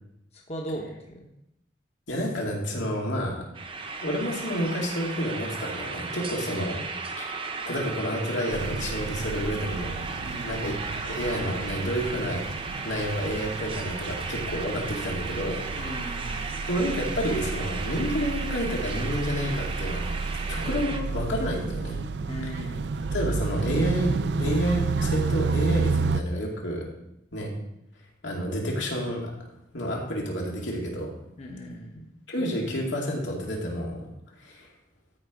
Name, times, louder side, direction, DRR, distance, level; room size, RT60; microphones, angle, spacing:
voice 1, 0.3-1.3 6.4-6.5 10.2-10.7 15.7-16.5 22.3-22.9 31.4-32.1, equal, 35° left, 0 dB, 1.0 m, -38 dB
voice 2, 2.1-3.5 4.0-6.8 7.2-7.4 7.7-10.0 10.4-12.4 12.8-15.6 16.7-20.0 20.5-22.0 22.4-22.5 23.1-26.9 27.3-27.5 28.2-29.3 29.7-31.1 32.3-34.1 34.4-34.7, equal, 90° left, -1 dB, 2.5 m, -29 dB
sound 1, 3.6-21.0, right 4 dB, 30° right, 0.8 m, -35 dB
sound 2, 8.5-26.2, right 4 dB, 65° right, 0.4 m, -31 dB
13.0 x 4.6 x 5.2 m, 0.83 s
head